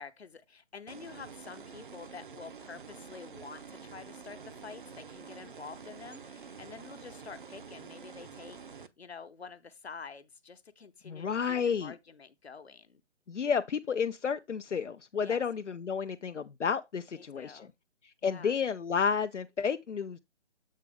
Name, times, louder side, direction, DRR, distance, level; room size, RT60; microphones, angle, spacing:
voice 1, 0.0-13.0 15.2-15.4 17.1-17.7 18.2-18.6, left 5 dB, 60° left, 0.9 m, -48 dB
sound 1, 0.9-8.9, right 6 dB, 45° right, 0.6 m, -48 dB
voice 2, 11.0-11.9 13.3-17.7 18.0-20.2, left 6 dB, 85° left, 0.5 m, -31 dB
7.4 x 4.8 x 3.4 m
figure-of-eight pair, 145°, 35 cm